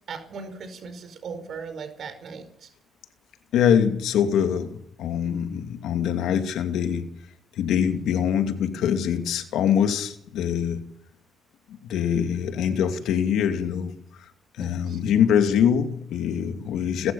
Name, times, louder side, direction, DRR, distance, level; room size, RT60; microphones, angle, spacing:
voice 1, 0.1-2.7 14.6-15.0, right 5 dB, 60° right, 5.0 m, -38 dB
voice 2, 3.5-7.1 7.5-10.8 11.7-13.9 14.2-17.1, left 8 dB, 80° left, 2.5 m, -24 dB
30.0 x 14.0 x 7.2 m
cardioid pair, 90°, 0 cm